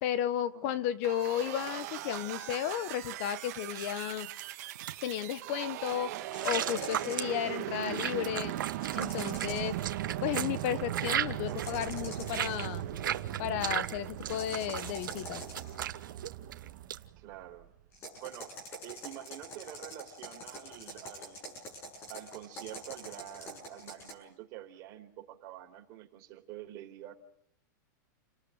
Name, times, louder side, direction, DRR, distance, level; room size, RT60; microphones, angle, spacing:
voice 1, 0.0-4.3 5.0-6.1 6.4-8.5 8.9-9.8 10.2-12.9 13.4-15.4, left 11 dB, 40° left, 15 dB, 1.2 m, -33 dB
sound 1, 1.0-17.7, right 13 dB, 50° right, 2.1 m, -39 dB
sound 2, 3.8-4.9 6.3-17.0, right 10 dB, 85° right, 1.5 m, -36 dB
sound 3, 6.3-7.3 8.8-9.8 11.4-12.7 14.3-15.9 17.9-24.1, equal, 20° left, 7.0 m, -45 dB
voice 2, 11.5-11.8 17.2-17.7 18.2-18.5 18.8-21.6 22.1-27.1, right 13 dB, 35° right, 3 dB, 4.3 m, -47 dB
30.0 x 19.0 x 9.2 m, 0.75 s
supercardioid pair, 160°, 11 cm